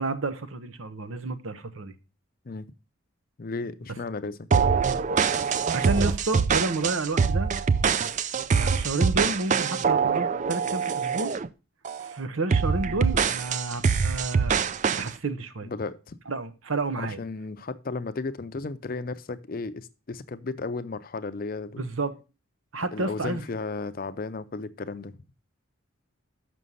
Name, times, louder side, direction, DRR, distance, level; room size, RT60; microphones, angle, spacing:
voice 1, 0.0-1.9 5.7-7.5 8.5-11.3 12.0-14.5 15.0-15.7 16.3-17.2 21.8-22.2 22.7-23.4, right 3 dB, 75° right, 0.8 m, -30 dB
voice 2, 3.4-4.4 12.8-13.0 15.6-16.2 17.0-21.8 22.9-25.2, left 3 dB, 45° left, 0.5 m, -34 dB
sound 1, 4.5-11.5 11.8-12.1 12.5-15.1, right 6 dB, 35° right, 0.3 m, -24 dB
6.4 x 6.1 x 5.4 m
head